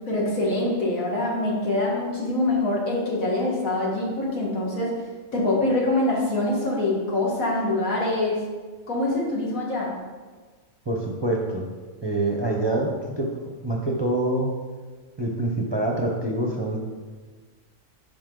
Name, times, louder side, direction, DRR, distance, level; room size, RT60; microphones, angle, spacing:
voice 1, 0.1-4.9 5.3-8.4 8.9-9.9, left 2 dB, 80° left, -3 dB, 2.2 m, -24 dB
voice 2, 10.9-11.7 12.0-13.4 13.6-14.6 15.2-16.8, right 1 dB, 25° right, 0 dB, 0.6 m, -25 dB
9.6 x 5.4 x 3.8 m, 1.4 s
omnidirectional pair, 1.4 m